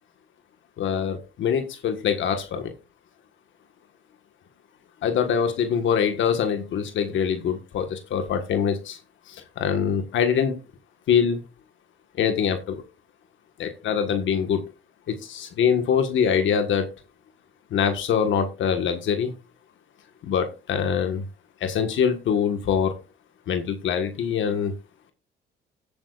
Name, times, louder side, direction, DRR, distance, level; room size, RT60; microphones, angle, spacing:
voice 1, 0.8-2.7 5.0-9.0 9.3-10.6 11.1-11.4 12.2-12.8 13.6-14.7 15.1-16.9 17.7-19.3 20.2-21.2 21.6-22.9 23.5-24.7, left 7 dB, 75° left, 7 dB, 1.5 m, -24 dB
16.5 x 8.8 x 2.5 m, 0.30 s
cardioid pair, 90°, 20 cm